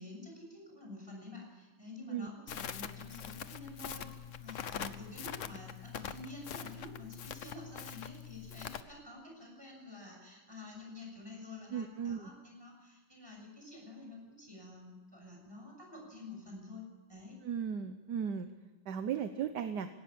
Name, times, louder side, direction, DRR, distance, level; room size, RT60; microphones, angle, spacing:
voice 1, 0.0-17.4, left 2 dB, 10° right, 0 dB, 6.5 m, -49 dB
Crackle, 2.5-8.8, left 9 dB, 65° left, 0.7 m, -43 dB
voice 2, 11.7-12.3 17.4-18.5 18.9-19.9, right 8 dB, 60° right, 9 dB, 1.3 m, -36 dB
19.0 x 17.5 x 8.7 m, 1.2 s
omnidirectional pair, 2.4 m